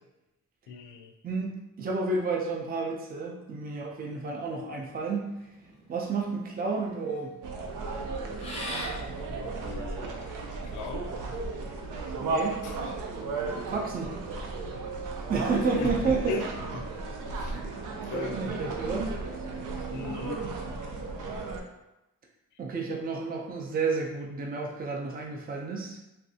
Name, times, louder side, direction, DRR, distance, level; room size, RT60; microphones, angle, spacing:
voice 1, 0.7-1.1 9.6-11.1 12.6-12.7 15.8-15.9 16.3-16.5 16.7-16.8 17.3-17.6 18.0-18.4 19.9-20.4, left 5 dB, 80° left, 4 dB, 0.4 m, -38 dB
voice 2, 1.2-5.3 5.9-7.3 12.2-12.6 13.7-14.1 15.3-16.5 17.5-17.8 18.1-19.2 22.6-26.0, right 4 dB, 30° right, -1 dB, 0.4 m, -31 dB
sound 1, 5.0-10.8, left 1 dB, 20° left, 0.6 m, -43 dB
sound 2, 7.4-21.6, right 3 dB, 90° right, 0.5 m, -35 dB
3.1 x 2.6 x 2.7 m, 0.94 s
wide cardioid pair, 160°, 30 cm